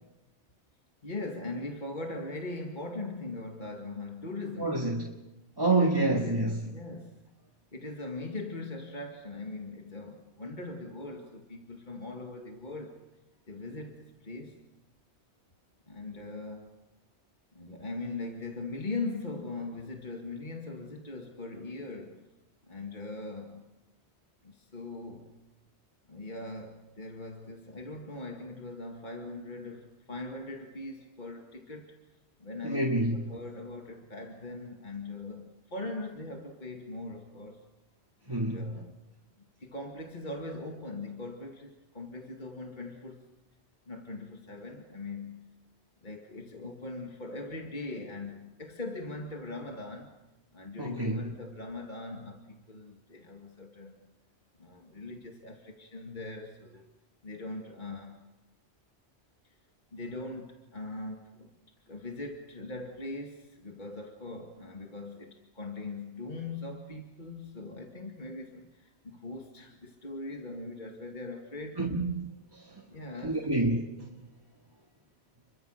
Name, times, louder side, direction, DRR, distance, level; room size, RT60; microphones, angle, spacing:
voice 1, 1.0-4.9 5.8-7.2 7.7-13.0 13.5-14.6 15.9-16.8 17.5-22.3 22.7-23.7 24.4-25.4 26.1-37.7 38.2-39.0 39.6-43.2 43.9-45.5 46.0-50.1 50.5-54.0 54.6-56.9 57.2-58.2 59.4-59.6 59.9-61.5 61.9-71.9 72.9-73.4, left 2 dB, 40° left, 2.3 m, -40 dB
voice 2, 4.6-5.1 5.6-6.6 32.6-33.2 38.3-38.8 50.8-51.3 71.8-72.8 73.2-74.1, right 2 dB, 20° right, 1.8 m, -28 dB
30.0 x 23.0 x 6.5 m
omnidirectional pair, 1.2 m